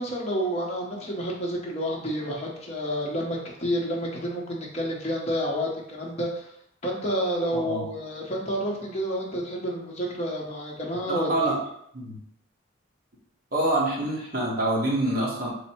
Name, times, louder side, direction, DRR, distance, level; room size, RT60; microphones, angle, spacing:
voice 1, 0.0-6.5 6.8-11.5, equal, 35° left, -3 dB, 0.7 m, -29 dB
voice 2, 11.1-11.6 11.9-12.2 13.5-15.5, right 1 dB, 45° right, -5 dB, 1.1 m, -26 dB
3.3 x 2.0 x 4.2 m, 0.73 s
head